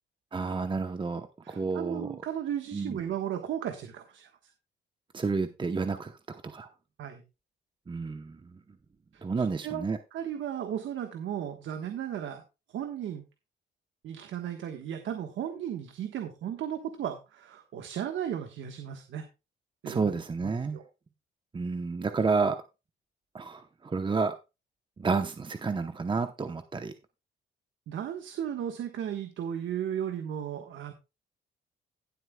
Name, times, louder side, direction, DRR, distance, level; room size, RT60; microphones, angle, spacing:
voice 1, 0.3-2.1 2.7-3.0 5.1-6.7 7.9-8.6 9.2-10.0 19.9-20.8 21.5-22.6 23.3-24.4 25.0-26.9, right 4 dB, 25° right, 8 dB, 0.9 m, -30 dB
voice 2, 1.4-4.3 7.0-7.2 9.1-9.2 9.6-9.9 10.1-12.4 12.7-13.3 14.0-19.3 19.8-20.8 27.9-30.9, right 9 dB, 75° right, 6 dB, 1.4 m, -35 dB
17.5 x 7.9 x 2.3 m, 0.27 s
cardioid pair, 90°, 20 cm